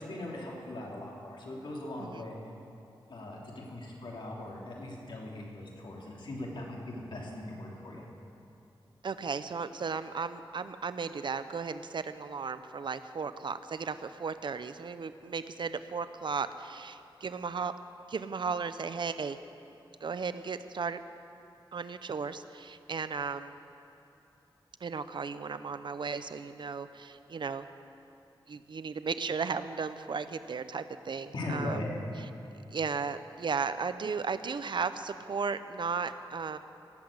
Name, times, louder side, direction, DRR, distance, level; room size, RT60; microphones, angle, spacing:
voice 1, 0.0-2.4 3.1-8.0 31.3-31.9, left 1 dB, 65° left, -3 dB, 3.2 m, -39 dB
voice 2, 9.0-17.7 18.1-19.4 20.0-21.0 21.7-23.5 24.8-27.6 28.5-31.8 32.7-36.6, right 5 dB, 60° right, 11 dB, 0.6 m, -35 dB
18.0 x 8.0 x 8.7 m, 3.0 s
wide cardioid pair, 100°, 9 cm